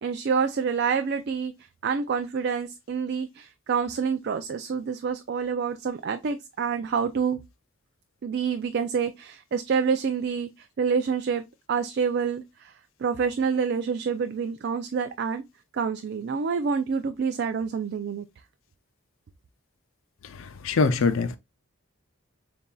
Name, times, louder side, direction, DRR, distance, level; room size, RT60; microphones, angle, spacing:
voice 1, 0.0-1.5 1.8-7.4 8.2-12.7 13.0-15.4 15.7-18.3, right 6 dB, 50° right, 0.3 m, -27 dB
voice 2, 20.2-21.4, left 4 dB, 65° left, 0.5 m, -24 dB
7.0 x 2.6 x 2.2 m
head